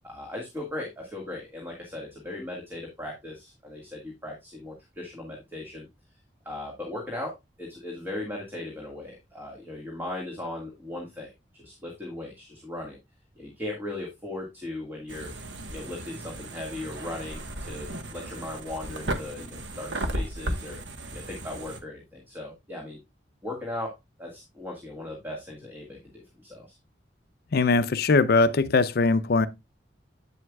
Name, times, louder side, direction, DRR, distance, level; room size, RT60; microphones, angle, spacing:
voice 1, 0.0-5.9 6.5-13.0 13.4-15.3 15.7-20.8 21.1-23.0 23.4-26.8, left 1 dB, 10° right, 1.8 m, -38 dB
sound 1, 15.1-21.8, right 1 dB, 90° right, 1.2 m, -35 dB
voice 2, 27.5-29.5, left 3 dB, 60° left, 0.5 m, -21 dB
8.5 x 7.8 x 2.3 m
head